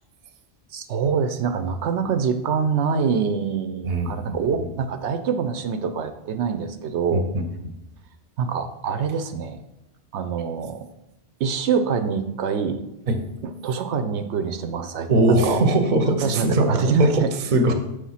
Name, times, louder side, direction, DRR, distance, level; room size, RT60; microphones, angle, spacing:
voice 1, 0.7-7.3 8.4-9.6 10.1-10.8 11.4-12.8 13.4-15.6 16.2-17.3, right 6 dB, 75° right, 9 dB, 0.9 m, -25 dB
voice 2, 3.8-4.7 7.1-7.4 13.1-13.2 15.1-16.7 17.0-17.2 17.5-17.7, right 2 dB, 45° right, 6 dB, 0.8 m, -21 dB
6.4 x 3.4 x 5.6 m, 0.90 s
omnidirectional pair, 1.2 m